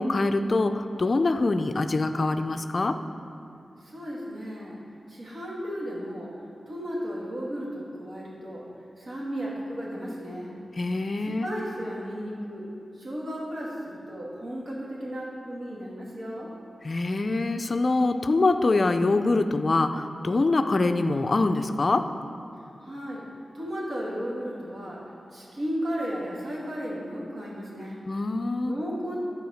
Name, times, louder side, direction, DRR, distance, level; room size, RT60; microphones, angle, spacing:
voice 1, 0.0-3.0 10.7-11.5 16.8-22.1 28.1-28.7, left 2 dB, 40° left, 8 dB, 0.4 m, -24 dB
voice 2, 3.8-4.8 5.1-6.3 6.7-8.7 9.0-10.6 11.3-12.7 12.9-16.5 22.8-23.3 23.5-25.0 25.3-28.0 28.6-29.2, equal, 65° right, -6 dB, 2.3 m, -34 dB
9.6 x 4.8 x 6.4 m, 2.5 s
wide cardioid pair, 115°, 0 cm